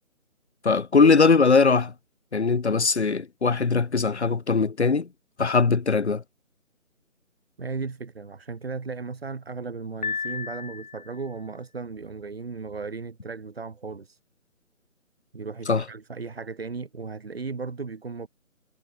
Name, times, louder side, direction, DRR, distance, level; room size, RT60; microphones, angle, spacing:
voice 1, 0.6-1.9 2.3-5.1 5.4-6.2 15.7-15.8, left 4 dB, 55° left, 1.8 m, -20 dB
voice 2, 7.6-14.2 15.3-18.3, right 4 dB, 45° right, 3.9 m, -36 dB
Piano, 10.0-11.3, left 5 dB, 30° left, 7.9 m, -33 dB
hypercardioid pair, 175°, 41 cm